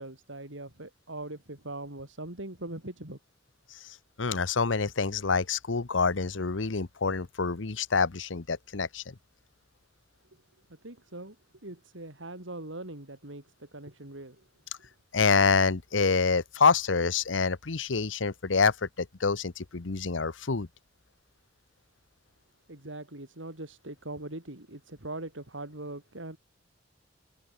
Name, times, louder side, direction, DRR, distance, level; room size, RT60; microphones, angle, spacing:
voice 1, 0.0-3.2 10.7-11.4 11.6-14.5 22.7-26.4, right 2 dB, 80° right, 4.1 m, -41 dB
voice 2, 4.2-9.0 15.1-20.7, left 4 dB, 80° left, 1.0 m, -26 dB
head